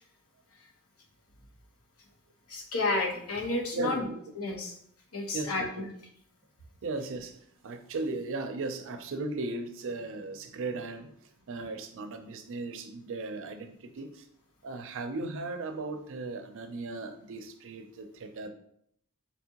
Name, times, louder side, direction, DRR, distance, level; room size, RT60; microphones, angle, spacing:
voice 1, 2.5-4.1 4.4-4.7 5.1-5.9, left 2 dB, 80° left, 0 dB, 1.0 m, -31 dB
voice 2, 3.7-4.2 5.3-5.9 6.8-7.3 7.6-11.1 11.5-14.2 14.6-18.5, right 3 dB, 60° right, 7 dB, 0.5 m, -36 dB
4.2 x 3.5 x 2.8 m, 0.67 s
head